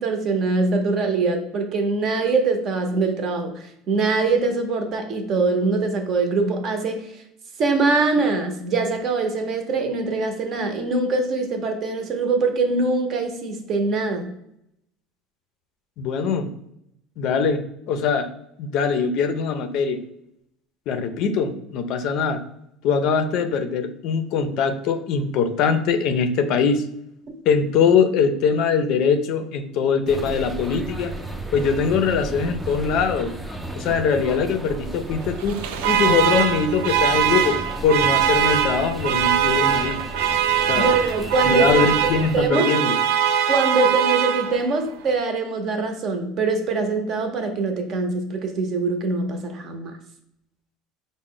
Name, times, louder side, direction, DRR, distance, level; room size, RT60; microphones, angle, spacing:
voice 1, 0.0-7.2 7.6-14.3 27.3-27.4 40.7-41.9 42.3-42.7 43.5-50.0, right 3 dB, 45° right, 5 dB, 0.7 m, -23 dB
voice 2, 16.0-16.5 17.2-18.3 18.6-20.0 20.9-22.4 22.8-26.8 27.5-31.1 31.5-33.3 33.8-35.6 35.9-37.6 37.8-40.0 40.7-40.9 41.4-42.9, left 5 dB, 60° left, 8 dB, 0.4 m, -22 dB
sound 1, 30.1-42.5, right 1 dB, 5° right, 0.4 m, -34 dB
Alarm, 35.4-44.8, right 9 dB, 90° right, 0.3 m, -22 dB
4.8 x 2.0 x 3.7 m, 0.76 s
cardioid pair, 140°, 0 cm